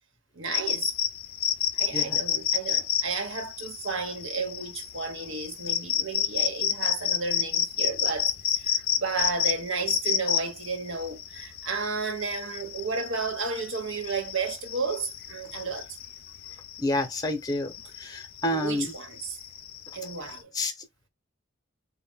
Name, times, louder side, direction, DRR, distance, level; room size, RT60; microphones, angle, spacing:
voice 1, 0.3-0.9 1.7-15.9 18.5-19.4 19.9-20.5, right 4 dB, 70° right, 1.1 m, -32 dB
sound 1, 0.5-20.4, left 9 dB, 50° left, 0.5 m, -30 dB
voice 2, 16.8-18.9 20.5-20.7, left 1 dB, 20° left, 0.9 m, -29 dB
3.7 x 2.2 x 3.6 m
head